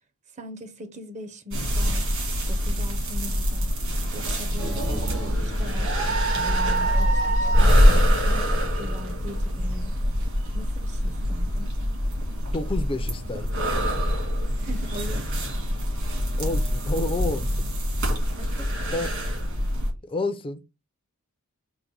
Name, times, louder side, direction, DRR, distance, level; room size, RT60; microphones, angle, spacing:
voice 1, 0.3-2.0 2.5-3.7 4.1-9.9 10.5-11.7 14.6-15.3 18.4-19.1, equal, 35° right, 0.6 m, -40 dB
sound 1, 1.5-19.9, equal, 65° right, 1.8 m, -24 dB
sound 2, 4.6-10.7 11.2-11.3 12.5-12.7, right 3 dB, 85° right, 1.7 m, -30 dB
voice 2, 12.5-13.5 16.4-17.6 18.9-19.1 20.0-20.6, left 2 dB, 25° left, 0.4 m, -29 dB
3.9 x 2.1 x 4.5 m
head